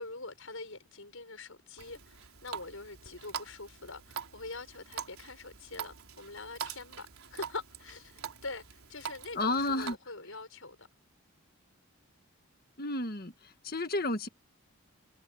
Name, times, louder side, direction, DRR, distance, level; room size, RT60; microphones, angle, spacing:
voice 1, 0.0-10.9, left 3 dB, 70° left, 6.5 m, -44 dB
Water tap faucet, 1.8-9.9, right 7 dB, 80° right, 4.2 m, -44 dB
voice 2, 9.3-9.9 12.8-13.3 13.6-14.3, left 2 dB, 45° left, 1.7 m, -31 dB
head